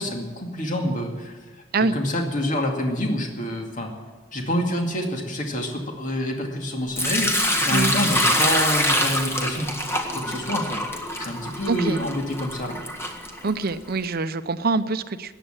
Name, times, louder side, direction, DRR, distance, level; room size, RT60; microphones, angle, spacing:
voice 1, 0.0-1.4 1.8-3.9 4.3-10.7 11.2-12.8, equal, 40° left, 2 dB, 2.3 m, -27 dB
Sink (filling or washing) / Liquid, 7.0-13.9, equal, 15° left, 1.6 m, -25 dB
voice 2, 11.7-12.0 13.4-15.3, right 3 dB, 50° right, 12 dB, 0.7 m, -24 dB
14.5 x 10.0 x 8.8 m, 1.5 s
head